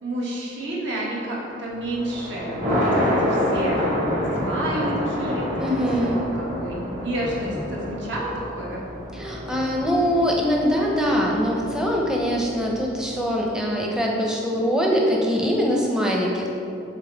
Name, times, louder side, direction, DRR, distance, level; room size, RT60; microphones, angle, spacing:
voice 1, 0.0-3.9 4.4-8.8, right 1 dB, 70° right, -4 dB, 1.3 m, -30 dB
Thunder, 1.8-13.1, equal, 40° right, 1.4 m, -28 dB
voice 2, 5.6-6.2 9.1-16.5, equal, 5° right, -2 dB, 0.6 m, -23 dB
7.3 x 4.0 x 3.4 m, 2.8 s
head